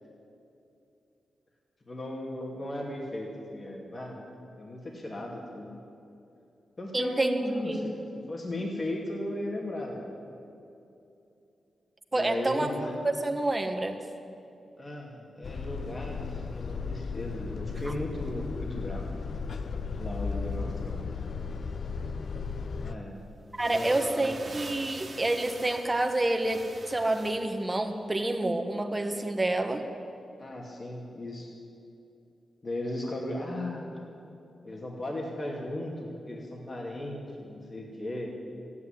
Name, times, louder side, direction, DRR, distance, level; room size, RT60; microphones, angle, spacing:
voice 1, 1.9-4.3 4.6-5.7 6.8-7.8 8.3-10.1 12.1-12.9 14.8-19.1 20.0-21.1 22.8-23.2 23.7-24.3 30.4-31.5 32.6-34.1 34.6-38.3, left 1 dB, 40° left, -2 dB, 2.6 m, -36 dB
voice 2, 6.9-7.8 12.1-12.7 13.0-14.0 23.6-29.8, right 2 dB, 25° right, 4 dB, 1.5 m, -28 dB
sound 1, 15.4-23.0, left 5 dB, 60° left, 0.7 m, -35 dB
sound 2, 22.9-23.0 23.5-27.6, right 3 dB, 45° right, 2.1 m, -44 dB
14.0 x 9.8 x 10.0 m, 2.8 s
cardioid pair, 70°, 0 cm